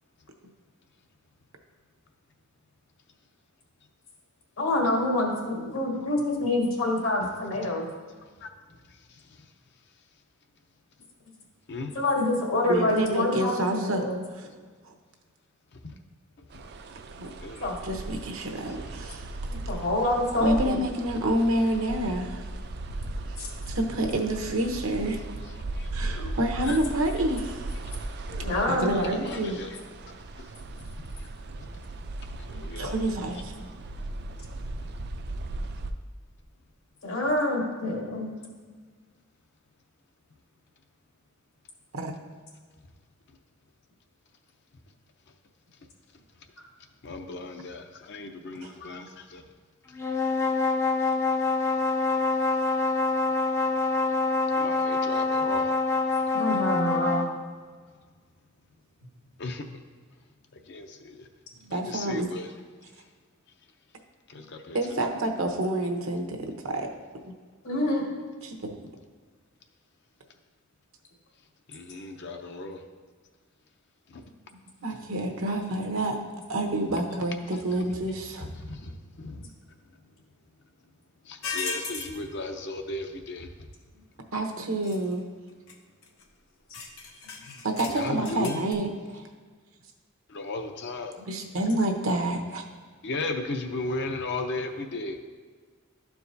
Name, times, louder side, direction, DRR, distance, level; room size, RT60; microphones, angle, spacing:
voice 1, 4.6-7.9 11.9-14.2 17.6-17.8 19.5-20.8 23.4-23.5 26.0-26.3 28.3-29.1 32.5-32.6 37.0-38.4 56.3-57.3 67.6-68.0 74.8-75.0 87.4-87.6 91.3-91.5, left 1 dB, 75° left, -2 dB, 1.8 m, -27 dB
voice 2, 8.4-9.5 11.7-11.9 13.3-13.5 15.7-16.0 17.4-17.7 18.6-18.8 19.1-19.2 25.4-26.1 26.6-26.8 27.9-28.0 28.6-29.8 30.4-30.9 31.6-31.7 32.4-32.9 34.8-34.9 46.4-46.5 47.0-49.5 51.8-51.9 52.5-52.6 54.5-55.8 56.1-56.2 59.4-59.6 60.6-61.3 61.7-62.5 64.3-65.0 71.7-72.8 74.1-74.2 75.4-75.5 77.5-77.6 78.4-79.5 81.2-83.7 87.9-88.6 90.3-91.1 93.0-95.2, left 2 dB, 55° left, 5 dB, 0.6 m, -36 dB
voice 3, 12.7-14.1 14.3-14.4 14.9-15.0 17.2-17.3 17.8-19.3 20.4-22.4 23.7-25.2 25.9-27.7 28.7-29.6 32.8-33.7 41.9-42.1 61.7-62.3 64.7-66.9 67.2-67.3 68.4-68.7 74.8-76.2 76.5-78.5 84.3-85.2 87.6-88.9 89.1-89.2 91.3-92.6, right 1 dB, 80° right, 3 dB, 0.9 m, -28 dB
sound 1, 16.5-35.9, right 2 dB, 55° right, 0.4 m, -37 dB
sound 2, 50.0-57.4, left 3 dB, 15° left, 0.4 m, -25 dB
sound 3, 81.4-82.2 84.8-85.1 85.7-85.8 86.0-86.2 86.7-88.7, left 4 dB, 90° left, 0.8 m, -36 dB
12.0 x 4.7 x 2.7 m, 1.5 s
head